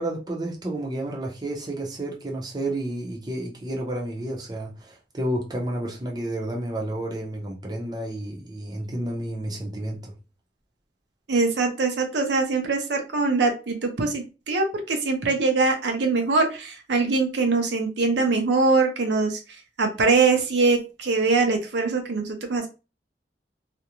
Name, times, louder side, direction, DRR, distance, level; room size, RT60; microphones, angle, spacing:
voice 1, 0.0-10.1, right 1 dB, 25° right, 0.6 m, -31 dB
voice 2, 11.3-19.4 19.8-22.7, right 3 dB, 75° right, 0.6 m, -23 dB
2.5 x 2.1 x 2.9 m
head